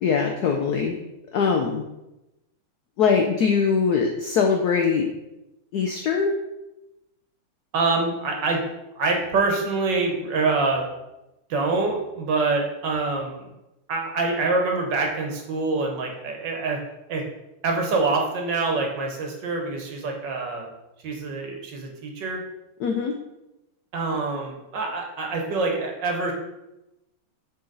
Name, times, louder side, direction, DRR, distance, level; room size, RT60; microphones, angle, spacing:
voice 1, 0.0-1.0 1.3-1.8 3.0-5.1 5.7-6.3 22.8-23.1, left 5 dB, 85° left, 3 dB, 0.8 m, -22 dB
voice 2, 7.7-8.6 9.0-10.8 11.5-13.5 13.9-16.8 17.1-17.2 17.6-20.7 21.0-22.4 23.9-26.3, right 3 dB, 60° right, 1 dB, 1.5 m, -25 dB
6.8 x 4.0 x 3.9 m, 0.93 s
omnidirectional pair, 2.4 m